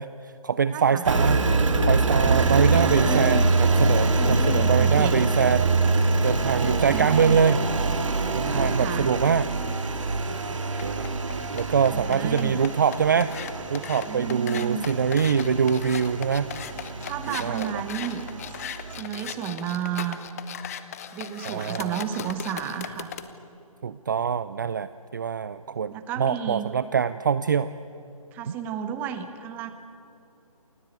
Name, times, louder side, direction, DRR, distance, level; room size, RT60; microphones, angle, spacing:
voice 1, 0.0-1.4 1.9-5.8 6.2-7.7 8.3-9.5 10.8-11.1 11.5-13.4 13.7-16.5 17.3-17.8 21.4-22.3 23.8-27.7 28.5-28.6, right 6 dB, 35° right, 15 dB, 0.5 m, -24 dB
voice 2, 0.7-1.0 2.1-3.5 4.0-5.2 6.6-7.4 8.5-9.1 11.9-12.6 14.1-14.8 17.0-18.2 18.9-20.2 21.1-23.1 25.9-26.7 28.3-29.7, right 8 dB, 10° right, 10 dB, 0.9 m, -32 dB
Engine, 1.0-19.0, right 3 dB, 55° right, 2.6 m, -25 dB
sound 1, 10.6-23.3, left 9 dB, 25° left, 1.0 m, -38 dB
28.5 x 16.5 x 8.9 m, 2.9 s
figure-of-eight pair, 155°, 19 cm